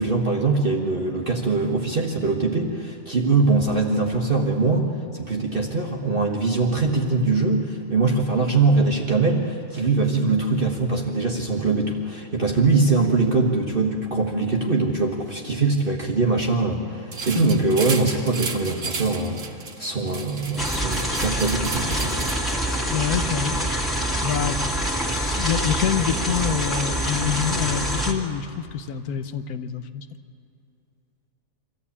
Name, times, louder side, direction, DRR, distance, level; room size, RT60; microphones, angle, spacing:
voice 1, 0.0-22.1, right 3 dB, 35° right, 0 dB, 1.5 m, -22 dB
sound 1, 17.1-22.8, right 4 dB, 55° right, 1.8 m, -33 dB
sound 2, 20.6-28.1, equal, ahead, 2.3 m, -25 dB
voice 2, 22.9-23.6 23.9-24.6 25.1-30.1, left 8 dB, 70° left, 11 dB, 1.3 m, -26 dB
24.0 x 14.5 x 8.5 m, 2.5 s
omnidirectional pair, 1.7 m